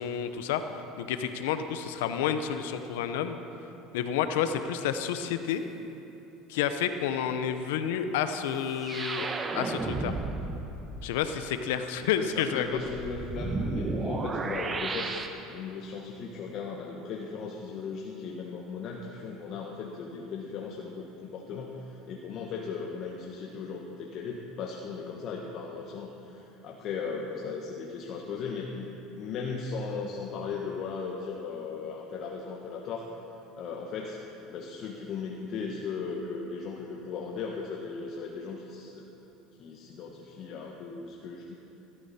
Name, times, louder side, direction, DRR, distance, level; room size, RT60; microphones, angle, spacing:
voice 1, 0.0-3.4 3.9-5.6 6.5-10.1 11.0-12.8, left 8 dB, 85° left, 9 dB, 0.7 m, -30 dB
sound 1, 8.8-11.0 12.7-15.3, right 3 dB, 25° right, 1.1 m, -33 dB
voice 2, 12.1-28.9 29.2-33.1 33.6-34.2 34.5-39.1 39.6-41.5, left 5 dB, 55° left, -1 dB, 1.3 m, -37 dB
15.0 x 13.0 x 4.3 m, 3.0 s
supercardioid pair, 105°, 0 cm